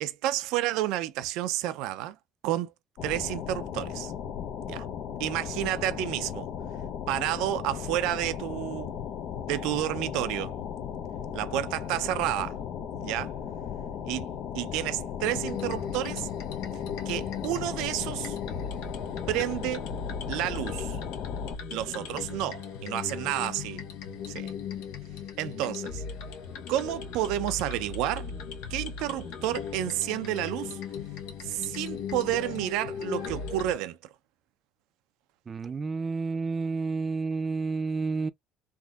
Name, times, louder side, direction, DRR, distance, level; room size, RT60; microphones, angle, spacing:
voice 1, 0.0-2.2 2.4-2.7 3.0-4.1 4.7-4.8 5.2-6.5 7.1-8.9 9.5-10.5 11.3-12.5 13.0-13.3 14.1-14.3 14.5-16.3 17.1-18.4 19.3-19.9 20.3-21.0 21.7-23.8 24.3-24.5 25.4-26.0 26.7-28.3 28.7-30.8 31.4-34.0, right 14 dB, 80° right, 0.5 m, -30 dB
sound 1, 3.0-21.6, left 8 dB, 60° left, 0.6 m, -36 dB
sound 2, 15.2-33.8, left 6 dB, 85° left, 1.1 m, -38 dB
voice 2, 35.5-38.3, right 4 dB, 25° right, 0.5 m, -30 dB
3.6 x 2.6 x 2.3 m
cardioid pair, 120°, 0 cm